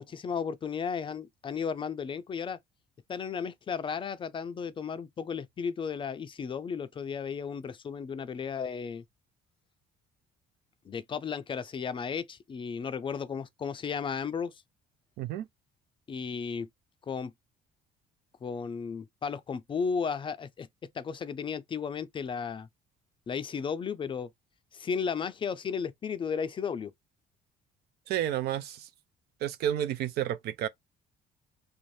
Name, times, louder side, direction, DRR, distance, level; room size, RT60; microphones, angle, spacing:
voice 1, 0.0-2.6 3.1-9.0 10.9-14.5 16.1-16.7 17.1-17.3 18.4-20.7 20.9-22.7 23.3-24.3 24.7-26.9, left 6 dB, 30° left, 0.4 m, -34 dB
voice 2, 15.2-15.5 28.1-28.9 29.4-30.7, right 11 dB, 70° right, 0.4 m, -31 dB
2.6 x 2.0 x 3.1 m
cardioid pair, 110°, 17 cm